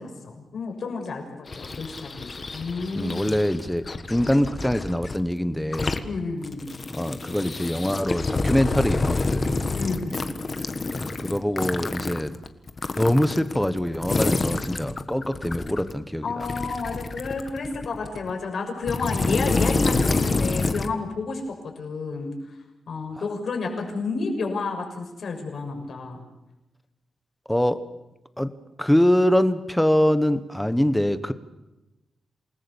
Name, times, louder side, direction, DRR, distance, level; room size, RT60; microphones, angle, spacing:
voice 1, 0.0-3.4 6.0-6.7 9.7-10.4 16.2-22.3 22.9-26.2, left 4 dB, 55° left, 2 dB, 6.5 m, -31 dB
sound 1, 1.5-5.2 5.6-6.0 6.4-15.9 16.4-18.3 18.8-20.9, left 3 dB, 30° left, 1.5 m, -28 dB
voice 2, 2.9-6.0 6.9-9.6 11.0-12.3 13.0-16.3 27.5-27.8 28.4-28.5 28.8-31.3, equal, 5° left, 12 dB, 1.2 m, -23 dB
28.0 x 19.5 x 7.1 m, 1.0 s
wide cardioid pair, 155°, 0 cm